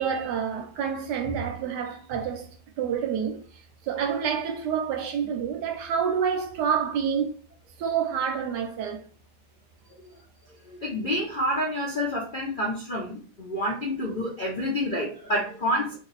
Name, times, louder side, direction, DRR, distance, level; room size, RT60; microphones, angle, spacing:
voice 1, 0.0-3.4 3.9-7.3 7.8-9.0, right 7 dB, 70° right, 1.1 m, -28 dB
voice 2, 10.7-16.0, equal, 65° left, 0.5 m, -28 dB
3.0 x 2.7 x 3.9 m
omnidirectional pair, 2.1 m